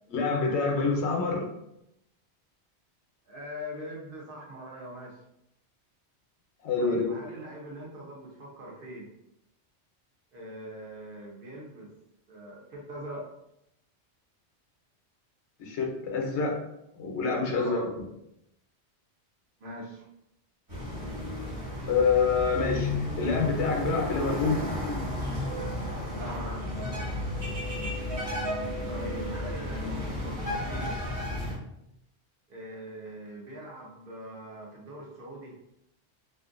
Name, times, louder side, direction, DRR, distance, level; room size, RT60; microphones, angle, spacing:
voice 1, 0.1-1.5 6.6-7.1 15.6-16.6 16.9-18.0 21.9-22.9 23.2-24.6, left 4 dB, 80° left, 0 dB, 1.0 m, -26 dB
voice 2, 3.2-5.2 6.8-9.1 10.3-11.9 12.3-13.3 17.5-17.9 19.6-20.1 26.1-27.2 28.9-31.0 32.5-35.6, equal, 55° right, -2 dB, 0.8 m, -42 dB
sound 1, 20.7-31.5, left 1 dB, 30° right, 1.2 m, -33 dB
sound 2, 24.9-29.9 30.4-30.8, right 3 dB, 80° right, 1.1 m, -43 dB
2.6 x 2.5 x 2.5 m, 0.81 s
omnidirectional pair, 1.1 m